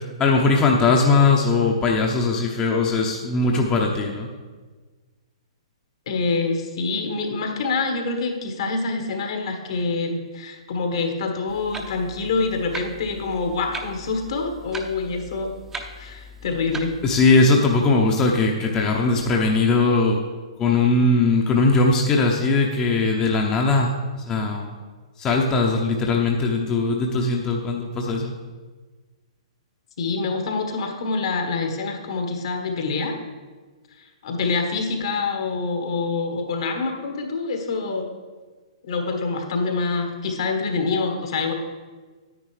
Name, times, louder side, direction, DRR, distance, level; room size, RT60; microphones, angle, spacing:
voice 1, 0.0-4.3 17.0-20.2 20.6-24.7 25.2-28.3, left 3 dB, 25° left, 0 dB, 0.8 m, -20 dB
voice 2, 6.1-15.5 16.0-16.9 30.0-33.2 34.0-38.1 38.9-41.5, left 4 dB, 60° left, 4 dB, 1.4 m, -26 dB
Clock, 11.5-17.4, right 1 dB, 10° right, 0.7 m, -39 dB
9.7 x 9.4 x 3.3 m, 1.4 s
figure-of-eight pair, 115°, 3 cm